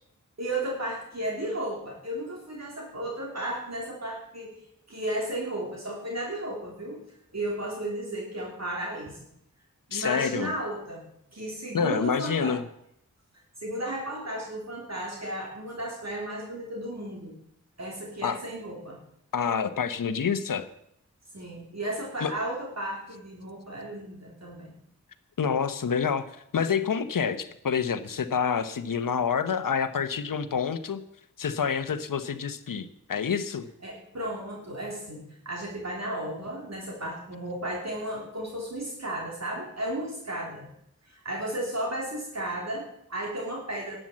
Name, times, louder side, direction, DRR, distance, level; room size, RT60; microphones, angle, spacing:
voice 1, 0.4-7.0 7.3-9.2 9.9-11.0 11.3-12.6 13.6-17.4 17.8-19.0 21.3-24.8 33.8-40.7 41.0-44.0, right 1 dB, 55° right, -2 dB, 3.2 m, -34 dB
voice 2, 9.9-10.5 11.7-12.6 18.2-18.4 19.3-20.6 22.2-22.3 25.4-31.0 31.4-33.7, left 6 dB, 80° left, 12 dB, 1.0 m, -28 dB
12.0 x 8.9 x 7.5 m, 0.75 s
cardioid pair, 45°, 32 cm